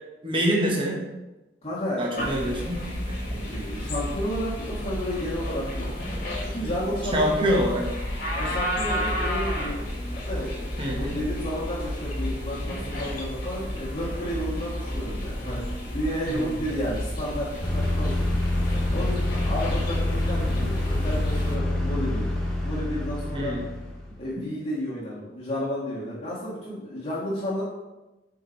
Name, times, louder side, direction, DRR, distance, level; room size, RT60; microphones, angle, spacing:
voice 1, 0.2-1.0 2.0-3.6 7.1-8.0 10.8-11.2 16.3-16.5 23.3-23.6, equal, 30° right, -2 dB, 1.1 m, -26 dB
voice 2, 1.6-2.3 3.4-7.5 8.3-9.9 10.3-15.6 15.9-18.2 18.9-22.3 22.6-23.5 24.2-27.6, equal, 35° left, -8 dB, 1.4 m, -32 dB
sound 1, 2.2-21.6, equal, 50° left, 1.7 m, -32 dB
sound 2, 17.6-24.2, left 1 dB, 5° left, 0.9 m, -27 dB
5.1 x 4.8 x 3.9 m, 1.0 s
head